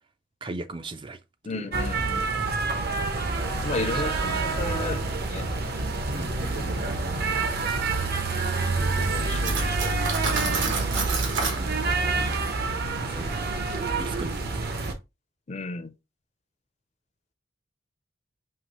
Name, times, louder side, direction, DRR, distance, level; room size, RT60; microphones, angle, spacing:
voice 1, 0.4-1.2 1.5-1.7 3.8-4.0 6.1-7.0 11.6-11.8 13.0-13.7 14.0-14.9, right 2 dB, 25° right, 0.4 m, -39 dB
voice 2, 1.4-2.6 3.6-5.0 5.3-5.5 6.8-6.9 8.8-11.0 15.5-15.9, left 3 dB, 35° left, 0.5 m, -35 dB
sound 1, 1.7-14.9, right 3 dB, 55° right, 0.8 m, -27 dB
Cutlery silverware, 9.4-11.6, right 4 dB, 70° right, 1.3 m, -29 dB
5.6 x 2.9 x 3.0 m
head